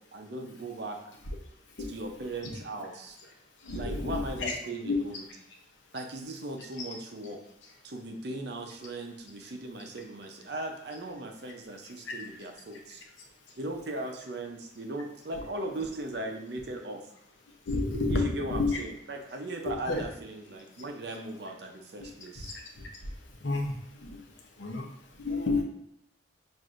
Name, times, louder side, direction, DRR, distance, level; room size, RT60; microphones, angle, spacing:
voice 1, 0.1-1.1 1.9-3.2 3.7-5.2 5.9-7.4 7.8-13.0 13.6-17.0 18.1-22.5, right 2 dB, 55° right, 3 dB, 0.6 m, -38 dB
voice 2, 3.6-4.5 4.8-5.0 12.1-12.2 17.7-18.8 19.7-20.0 22.4-22.5 23.4-23.7 24.0-24.2 24.6-24.8 25.2-25.6, left 2 dB, 70° left, 1 dB, 0.8 m, -30 dB
6.1 x 2.6 x 2.5 m, 0.75 s
head